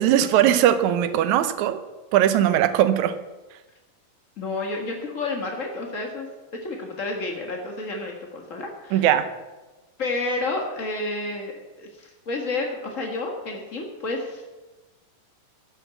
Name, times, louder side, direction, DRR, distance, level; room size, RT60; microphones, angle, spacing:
voice 1, 0.0-1.8 2.1-3.1 8.9-9.3, right 11 dB, 70° right, 11 dB, 2.0 m, -19 dB
voice 2, 4.4-6.3 6.6-9.0 10.0-14.4, left 2 dB, 65° left, 1 dB, 0.7 m, -30 dB
13.0 x 8.2 x 8.2 m, 1.2 s
omnidirectional pair, 4.0 m